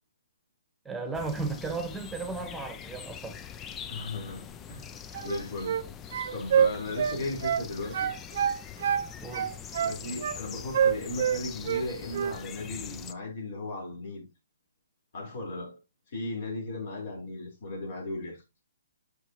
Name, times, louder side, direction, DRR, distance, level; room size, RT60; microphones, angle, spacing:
voice 1, 0.8-3.4 9.2-9.5, right 3 dB, 5° right, 1.4 m, -35 dB
sound 1, 1.1-13.1, left 8 dB, 15° left, 0.5 m, -43 dB
voice 2, 3.9-4.9 5.2-5.8 6.3-8.1 9.8-14.3 15.1-15.8 16.1-18.4, left 2 dB, 55° left, 4.6 m, -36 dB
sound 2, 5.1-5.9 6.1-7.7 7.9-9.1 9.3-10.4 10.7-11.8 12.1-12.4, right 8 dB, 55° right, 0.6 m, -26 dB
8.0 x 6.2 x 3.1 m
hypercardioid pair, 150°, 0 cm